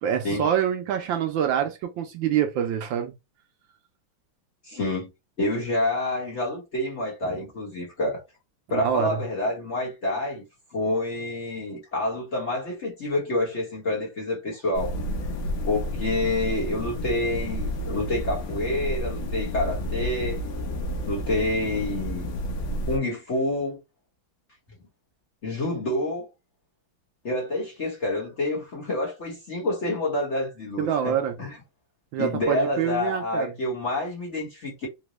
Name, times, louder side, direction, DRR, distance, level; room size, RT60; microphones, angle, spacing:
voice 1, 0.0-3.1 7.2-7.3 8.7-9.2 30.8-31.4 32.1-33.5, right 9 dB, 75° right, 1.2 m, -26 dB
voice 2, 4.6-5.1 5.4-8.2 8.7-15.0 15.7-20.4 21.1-22.3 22.9-23.8 25.4-26.3 27.2-31.6 32.2-34.9, left 2 dB, 40° left, 1.3 m, -28 dB
sound 1, 14.7-23.0, equal, 75° left, 1.6 m, -30 dB
4.0 x 2.2 x 3.0 m
omnidirectional pair, 2.3 m